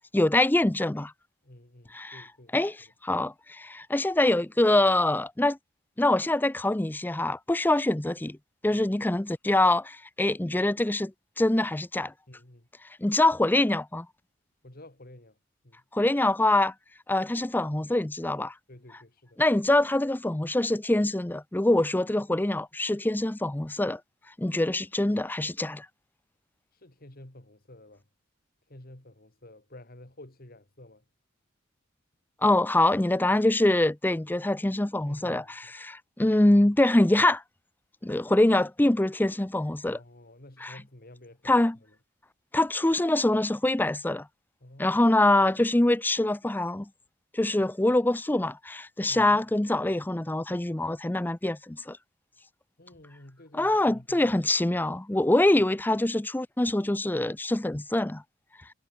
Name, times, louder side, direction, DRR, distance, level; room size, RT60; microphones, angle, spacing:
voice 1, 0.1-1.1 1.9-2.2 2.5-5.6 6.0-8.4 8.6-12.1 13.0-14.1 15.9-16.7 17.1-18.5 19.4-24.0 24.4-25.9 32.4-35.4 35.7-37.4 38.0-40.0 40.6-40.7 41.5-41.8 42.5-44.3 44.8-46.9 47.3-52.0 53.5-58.2, left 1 dB, 10° left, 0.5 m, -24 dB
voice 2, 1.4-2.5 8.7-8.9 12.3-12.7 14.6-15.4 15.6-15.8 18.7-19.4 26.7-28.0 28.7-31.0 35.1-35.6 39.9-42.0 44.6-45.0 49.1-49.4 52.8-54.4, left 1 dB, 45° left, 2.7 m, -50 dB
head